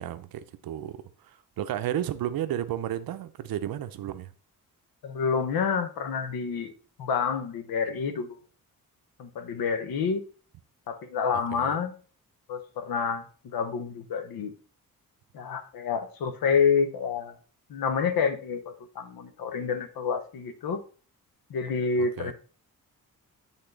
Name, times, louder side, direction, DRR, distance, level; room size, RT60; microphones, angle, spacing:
voice 1, 0.0-4.3 7.9-8.0 11.5-11.8 22.0-22.3, right 11 dB, 80° right, 0.6 m, -33 dB
voice 2, 5.0-6.7 7.0-8.4 9.2-10.2 10.9-11.9 12.5-14.5 15.3-17.3 17.7-20.8 21.5-22.3, left 6 dB, 90° left, 1.0 m, -28 dB
8.2 x 3.7 x 3.8 m
cardioid pair, 100°, 35 cm